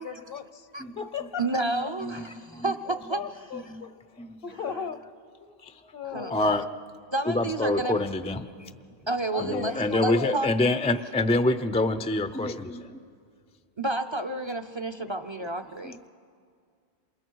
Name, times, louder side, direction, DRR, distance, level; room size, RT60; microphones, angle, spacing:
voice 1, 0.0-0.7 1.0-1.9 2.9-5.0 5.4-5.6 5.9-6.7 9.3-10.4, left 7 dB, 65° left, 10 dB, 1.1 m, -37 dB
voice 2, 1.4-3.2 6.1-6.5 7.1-8.0 8.5-8.7 9.1-10.5 13.8-16.1, right 2 dB, 30° right, 8 dB, 0.7 m, -30 dB
voice 3, 6.1-6.6 7.3-8.5 9.4-13.0 15.8-16.1, left 2 dB, 10° left, 10 dB, 0.4 m, -26 dB
28.0 x 28.0 x 4.7 m, 2.2 s
omnidirectional pair, 1.0 m